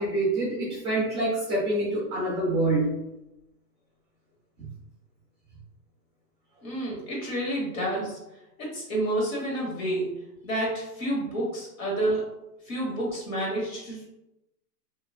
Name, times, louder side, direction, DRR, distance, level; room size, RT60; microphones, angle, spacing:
voice 1, 0.0-3.0, right 2 dB, 20° right, -8 dB, 0.6 m, -26 dB
voice 2, 6.6-8.2 8.6-10.1 10.4-12.2 12.6-14.1, right 1 dB, 55° left, -4 dB, 1.4 m, -29 dB
2.9 x 2.5 x 2.3 m, 0.92 s
hypercardioid pair, 170°, 48 cm